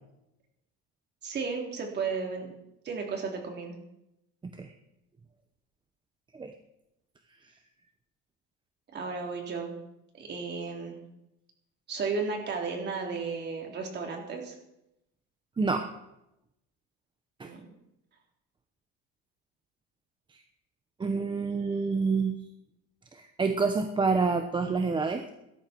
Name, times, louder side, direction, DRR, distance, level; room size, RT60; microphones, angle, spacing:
voice 1, 1.2-2.5 2.8-3.8 8.9-9.7 10.1-11.0 11.9-14.5 17.4-17.6, right 4 dB, 35° right, 2 dB, 3.8 m, -34 dB
voice 2, 15.6-15.9 17.4-17.5 21.0-22.3 23.1-25.3, right 4 dB, 15° right, 6 dB, 0.9 m, -28 dB
17.5 x 13.0 x 4.6 m, 0.85 s
cardioid pair, 140°, 30 cm